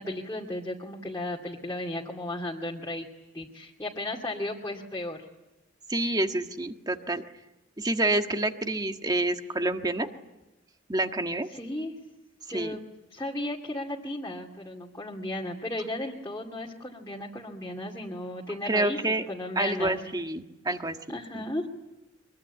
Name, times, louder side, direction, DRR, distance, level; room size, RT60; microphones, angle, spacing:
voice 1, 0.0-3.1 3.3-5.3 11.5-12.0 12.5-12.8 13.1-19.0 19.3-20.0 21.1-21.7, left 1 dB, 15° left, -3 dB, 2.5 m, -35 dB
voice 2, 5.9-7.2 7.8-10.1 10.9-11.5 12.5-12.8 18.6-19.3 19.5-21.2, right 2 dB, 20° right, 6 dB, 1.6 m, -28 dB
24.0 x 23.0 x 9.9 m, 0.98 s
head